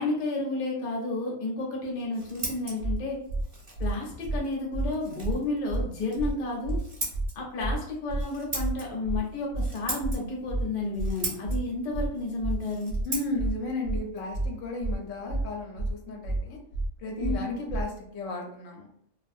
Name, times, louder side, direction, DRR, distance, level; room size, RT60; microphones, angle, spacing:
voice 1, 0.0-3.2 3.8-6.8 7.3-12.9 17.2-17.5, left 2 dB, 45° left, -2 dB, 0.7 m, -31 dB
Scissors, 1.8-15.4, right 2 dB, 30° right, 0.6 m, -41 dB
sound 1, 2.8-3.0 3.3-3.4 3.8-3.9 4.2-4.4 4.7-4.9 5.2-5.4 5.7-5.8 6.2-6.3 6.6-6.8 7.1-7.3 7.6-7.8 8.1-8.2 8.6-8.7 9.0-9.2 9.5-9.7 10.0-10.2 10.5-10.6 11.0-11.1 11.4-11.6 11.9-12.1 12.4-12.6 12.9-13.0 13.4-13.5 13.8-14.0 14.3-14.5 14.8-15.0 15.3-15.4 15.8-15.9 16.2-16.4 16.7-16.9 17.2-17.4 17.7-17.8, right 2 dB, 65° right, 0.8 m, -29 dB
voice 2, 13.0-16.6 17.0-18.9, left 2 dB, 80° left, 1 dB, 0.9 m, -34 dB
2.4 x 2.3 x 2.5 m, 0.68 s
omnidirectional pair, 1.3 m